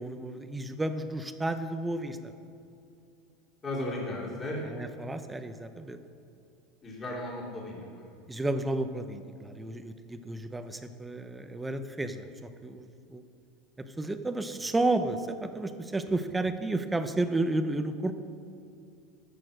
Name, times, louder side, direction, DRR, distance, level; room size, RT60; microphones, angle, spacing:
voice 1, 0.0-2.3 4.7-6.0 8.3-12.3 12.6-13.2 13.8-18.1, right 2 dB, 10° right, 9 dB, 0.8 m, -32 dB
voice 2, 3.6-4.6 6.8-8.0 14.5-14.7, left 1 dB, 25° left, -4 dB, 3.0 m, -35 dB
13.5 x 6.8 x 6.4 m, 2.5 s
supercardioid pair, 115°, 0 cm